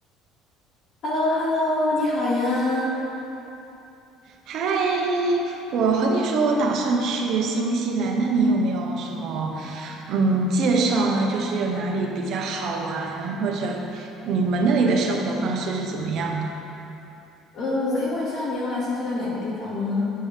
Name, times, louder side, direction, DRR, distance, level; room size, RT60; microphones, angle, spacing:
voice 1, 1.0-2.9 17.5-20.1, left 2 dB, 45° left, -8 dB, 2.0 m, -25 dB
voice 2, 4.5-16.5, right 3 dB, 55° right, 1 dB, 1.0 m, -24 dB
9.3 x 7.8 x 3.4 m, 2.9 s
cardioid pair, 150°, 0 cm